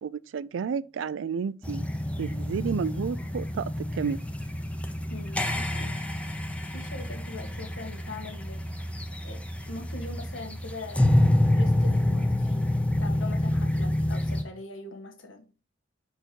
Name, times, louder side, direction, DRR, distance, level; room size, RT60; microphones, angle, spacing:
voice 1, 0.0-1.9 2.2-4.2, right 6 dB, 70° right, 0.4 m, -31 dB
sound 1, 1.6-14.4, left 1 dB, 5° left, 0.6 m, -27 dB
voice 2, 5.1-6.3 6.7-8.7 9.2-9.4 9.7-11.1 11.5-12.7 13.0-15.5, left 2 dB, 85° left, 1.5 m, -42 dB
5.1 x 4.5 x 4.5 m
head